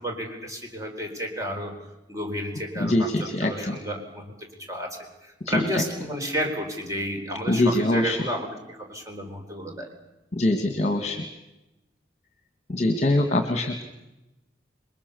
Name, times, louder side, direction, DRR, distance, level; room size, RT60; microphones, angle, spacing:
voice 1, 0.0-1.7 2.1-9.9, equal, 20° right, 3 dB, 4.5 m, -32 dB
voice 2, 2.8-3.8 5.5-5.8 7.5-8.3 10.3-11.3 12.7-13.8, left 1 dB, 40° left, 6 dB, 1.8 m, -23 dB
29.0 x 22.0 x 7.0 m, 0.96 s
head